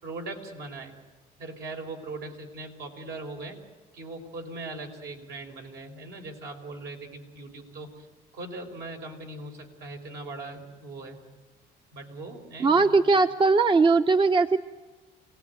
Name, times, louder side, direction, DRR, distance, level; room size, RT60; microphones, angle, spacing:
voice 1, 0.0-0.9 1.4-3.6 3.9-8.1 8.3-11.2 11.9-12.9, right 2 dB, 75° right, 2 dB, 4.6 m, -40 dB
voice 2, 12.6-14.6, right 4 dB, 30° right, 10 dB, 0.7 m, -20 dB
26.5 x 18.0 x 9.4 m, 1.3 s
cardioid pair, 110°, 17 cm